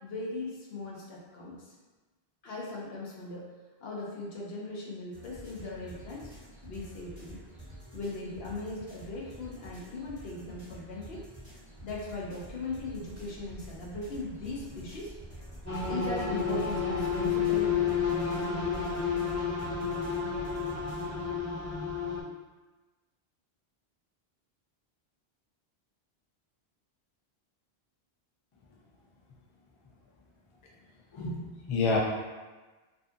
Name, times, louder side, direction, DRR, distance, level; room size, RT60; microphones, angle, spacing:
voice 1, 0.0-1.6 2.4-3.5 3.8-6.3 6.6-7.4 7.9-11.2 11.8-15.1 15.9-18.4, left 2 dB, 70° left, -3 dB, 0.9 m, -39 dB
sound 1, 5.1-21.3, right 1 dB, 25° right, 0.9 m, -48 dB
sound 2, 15.7-22.2, left 6 dB, 20° left, 0.6 m, -30 dB
voice 2, 31.1-32.0, left 4 dB, 55° left, -2 dB, 0.3 m, -29 dB
2.6 x 2.6 x 2.3 m, 1.2 s
omnidirectional pair, 1.1 m